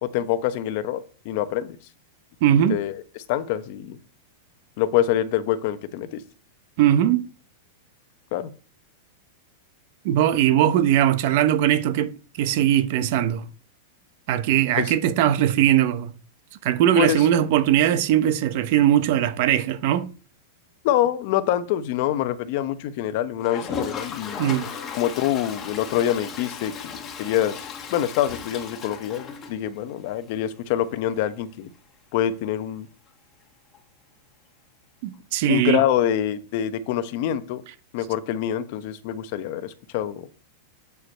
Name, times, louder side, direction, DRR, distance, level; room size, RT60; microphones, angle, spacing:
voice 1, 0.0-1.8 2.7-3.0 3.3-4.0 4.8-6.2 8.3-8.5 14.8-14.9 17.0-17.3 20.8-24.4 24.9-31.7 32.1-32.9 35.5-37.6 37.9-40.3, left 11 dB, 50° left, 0.8 m, -25 dB
voice 2, 2.4-2.8 6.8-7.3 10.0-13.4 14.3-16.1 16.6-20.1 24.4-24.7 35.0-35.8, right 11 dB, 50° right, 0.7 m, -20 dB
Toilet flush, 23.4-30.1 30.4-30.5 30.7-30.8 31.1-31.2 33.7-33.8 35.1-35.2, left 6 dB, 20° left, 1.4 m, -36 dB
8.1 x 5.2 x 4.4 m
supercardioid pair, 155°, 0 cm